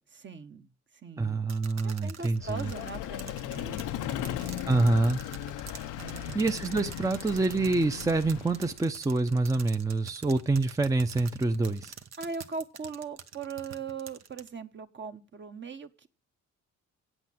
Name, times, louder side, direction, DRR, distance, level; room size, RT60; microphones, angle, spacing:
voice 1, 0.1-0.7 1.0-1.5 1.8-4.9 6.0-6.6 12.2-16.1, right 5 dB, 40° right, 8 dB, 1.2 m, -40 dB
voice 2, 1.2-2.7 4.7-5.2 6.3-11.9, right 2 dB, 10° right, 7 dB, 0.7 m, -26 dB
sound 1, 1.5-14.5, right 8 dB, 60° right, 1.1 m, -45 dB
Vehicle, 2.4-8.8, left 12 dB, 85° left, 0.7 m, -37 dB
8.5 x 8.1 x 7.6 m, 0.37 s
cardioid pair, 90°, 30 cm